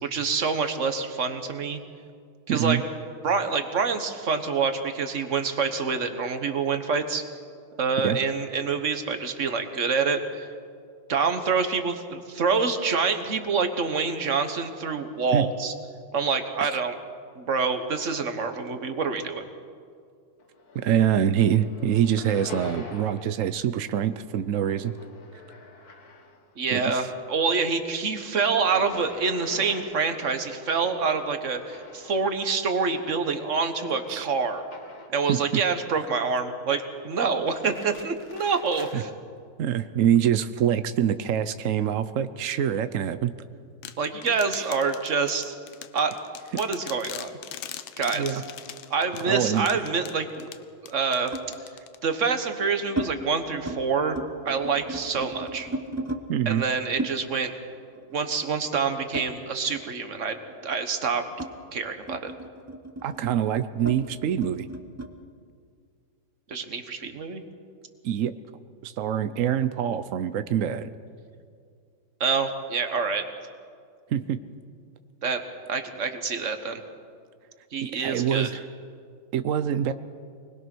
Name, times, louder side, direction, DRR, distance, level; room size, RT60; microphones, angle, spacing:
voice 1, 0.0-1.8 2.5-2.8 3.2-7.2 7.8-10.5 11.1-15.7 16.1-16.9 17.4-19.4 26.6-34.6 35.1-39.1 44.0-45.5 45.9-46.1 46.6-47.4 48.0-48.4 48.9-50.5 50.9-51.3 52.0-54.2 54.4-55.7 56.4-57.5 58.1-60.4 60.6-61.2 61.7-62.3 66.5-67.4 72.2-73.3 75.2-75.4 75.7-76.8 77.7-78.5, right 5 dB, 40° right, 7 dB, 1.5 m, -26 dB
voice 2, 2.5-2.8 8.0-8.2 15.3-15.5 16.6-16.7 20.7-24.9 26.7-27.1 34.1-34.3 35.3-35.6 38.9-39.0 39.6-43.3 44.5-44.7 48.1-48.4 49.3-49.7 56.3-56.6 63.0-64.7 68.0-68.3 68.8-70.9 74.1-74.4 78.0-78.6 79.3-79.9, right 9 dB, 80° right, 11 dB, 0.7 m, -25 dB
sound 1, 20.4-21.1 21.4-23.4 23.7-26.5 26.9-35.3 35.7-36.4 37.2-39.0, left 3 dB, 50° left, 1.9 m, -45 dB
sound 2, 43.8-52.3, left 11 dB, 75° left, 1.6 m, -41 dB
sound 3, 48.4-50.0 51.3-51.6 52.3-53.1 53.5-53.8 54.1-56.2 57.0-59.9 60.2-65.1, right 2 dB, 20° right, 0.4 m, -36 dB
25.0 x 20.0 x 6.2 m, 2.2 s
omnidirectional pair, 2.2 m